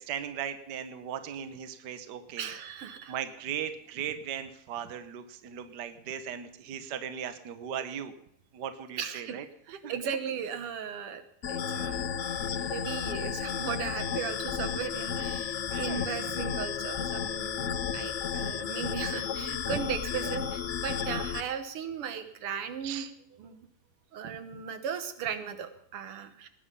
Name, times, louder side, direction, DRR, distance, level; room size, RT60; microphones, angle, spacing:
voice 1, 0.0-2.5 3.1-8.1 8.5-9.4 9.8-9.9 12.3-12.7 15.7-16.0 17.6-17.7 22.8-23.1 24.2-24.3, right 9 dB, 55° right, 10 dB, 1.5 m, -38 dB
voice 2, 2.4-3.2 9.0-12.0 12.6-23.7 24.1-26.5, right 7 dB, 85° right, 10 dB, 2.1 m, -37 dB
sound 1, 11.4-21.4, left 7 dB, 90° left, 0.6 m, -33 dB
18.5 x 10.0 x 5.4 m, 0.73 s
omnidirectional pair, 2.4 m